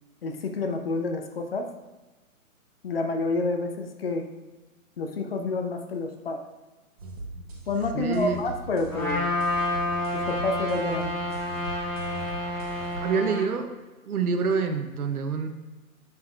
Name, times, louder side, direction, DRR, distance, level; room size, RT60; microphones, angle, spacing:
voice 1, 0.2-1.7 2.8-4.2 5.0-6.4 7.7-9.3 10.1-11.1, left 3 dB, 40° left, 5 dB, 0.6 m, -29 dB
sound 1, 7.0-13.0, right 2 dB, 25° right, 0.8 m, -39 dB
voice 2, 7.9-8.4 13.0-13.7 14.0-15.5, right 5 dB, 75° right, 7 dB, 0.9 m, -26 dB
Trumpet, 8.9-13.5, left 1 dB, 5° left, 1.0 m, -29 dB
7.4 x 5.6 x 2.4 m, 1.2 s
hypercardioid pair, 155°, 44 cm